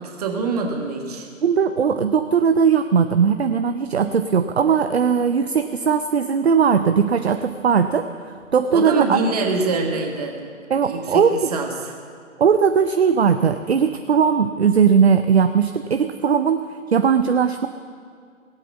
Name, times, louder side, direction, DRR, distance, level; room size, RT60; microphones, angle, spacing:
voice 1, 0.0-1.3 8.7-10.5 10.8-11.3 11.5-11.7, right 4 dB, 30° right, 3 dB, 1.6 m, -24 dB
voice 2, 1.4-8.1 8.5-9.2 10.7-11.5 12.4-17.7, right 6 dB, 50° right, 9 dB, 0.6 m, -18 dB
17.5 x 8.3 x 8.2 m, 2.2 s
figure-of-eight pair, 140°, 41 cm